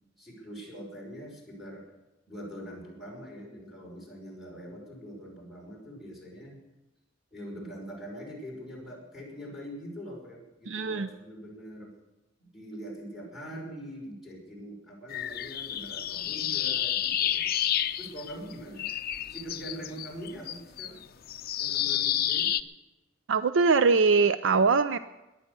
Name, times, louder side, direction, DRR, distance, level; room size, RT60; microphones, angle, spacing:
voice 1, 0.2-1.8 2.3-6.6 7.3-11.9 12.5-17.4 18.0-18.9 19.3-21.0 21.6-22.5, equal, ahead, -3 dB, 5.6 m, -43 dB
voice 2, 10.7-11.1 23.3-25.0, right 4 dB, 70° right, 12 dB, 0.5 m, -22 dB
sound 1, 15.1-18.5 18.8-22.6, left 11 dB, 50° left, 0.6 m, -30 dB
18.5 x 11.0 x 6.8 m, 1.0 s
head